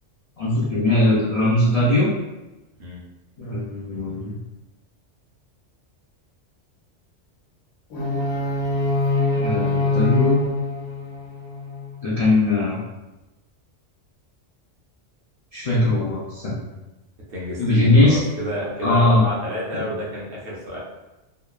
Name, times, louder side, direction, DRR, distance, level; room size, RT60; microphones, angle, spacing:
voice 1, 0.4-2.1 3.4-4.3 9.4-10.4 12.0-12.8 15.5-16.6 17.6-18.2 18.8-19.2 19.7-19.8, left 2 dB, 55° left, -8 dB, 0.4 m, -20 dB
sound 1, 7.9-11.9, left 3 dB, 85° left, 1.0 m, -23 dB
voice 2, 17.3-20.8, equal, 60° right, -5 dB, 0.8 m, -29 dB
2.9 x 2.0 x 2.3 m, 1.0 s
omnidirectional pair, 1.2 m